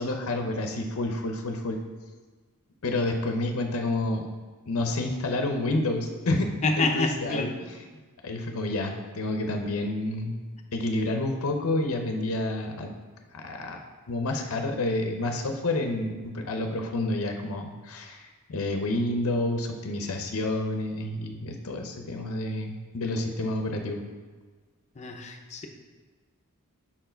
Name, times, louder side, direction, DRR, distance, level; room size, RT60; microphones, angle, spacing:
voice 1, 0.0-1.8 2.8-4.2 4.7-6.5 6.8-7.8 8.2-10.3 10.7-12.9 13.3-24.0, left 2 dB, 70° left, 4 dB, 0.6 m, -29 dB
voice 2, 6.6-7.5 25.0-25.7, left 3 dB, 30° left, 3 dB, 0.6 m, -27 dB
5.9 x 4.6 x 4.4 m, 1.4 s
head